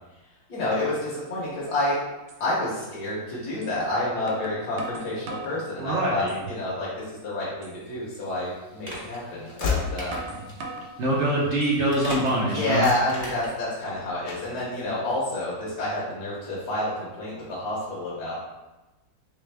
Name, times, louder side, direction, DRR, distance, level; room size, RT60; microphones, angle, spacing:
voice 1, 0.5-2.0 2.4-10.2 12.4-18.4, left 1 dB, 75° left, -7 dB, 1.4 m, -29 dB
sound 1, 2.3-2.4 3.6-3.8 4.3-5.6 6.1-6.6 7.0-7.1 7.6-7.8 8.9-9.1 9.6-10.9 11.4-12.0, right 3 dB, 85° right, 1.3 m, -39 dB
voice 2, 5.8-6.4 11.0-12.9, right 1 dB, 60° right, -5 dB, 0.8 m, -24 dB
Train / Slam, 8.2-11.8 12.1-12.3 12.7-13.9 14.3-14.6, left 5 dB, 60° left, 1.0 m, -33 dB
sound 2, 8.8-9.2 10.0-10.6 11.0-11.1 11.8-12.6 13.2-13.6 13.9-14.0, equal, 30° right, 1.1 m, -41 dB
3.3 x 3.3 x 3.2 m, 1.1 s
omnidirectional pair, 1.7 m